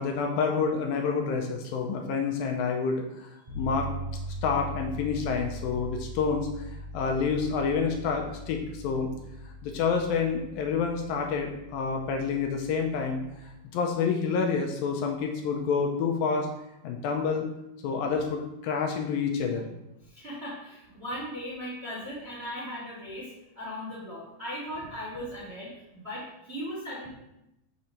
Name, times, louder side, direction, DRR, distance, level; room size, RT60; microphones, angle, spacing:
voice 1, 0.0-3.3 3.6-3.9 4.4-6.7 6.9-9.1 9.6-16.5 16.8-17.5 17.8-19.7, left 5 dB, 80° left, 3 dB, 2.4 m, -28 dB
sound 1, 3.5-13.6, equal, 85° right, 0.3 m, -41 dB
voice 2, 20.0-27.1, equal, 25° right, -7 dB, 1.6 m, -38 dB
7.1 x 6.1 x 3.2 m, 0.87 s
omnidirectional pair, 4.4 m